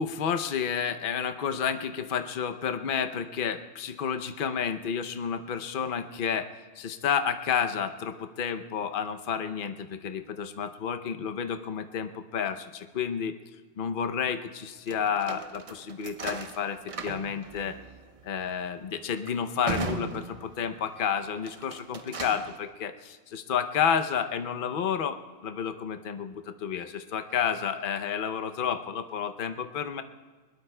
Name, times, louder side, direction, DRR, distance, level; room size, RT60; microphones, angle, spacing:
voice 1, 0.0-6.5 6.8-13.4 13.8-17.8 18.2-30.0, left 7 dB, 50° left, 8 dB, 0.8 m, -30 dB
sound 1, 14.9-20.9 21.4-22.6, right 4 dB, 40° right, 0.5 m, -39 dB
22.5 x 20.5 x 2.2 m, 1.4 s
omnidirectional pair, 1.3 m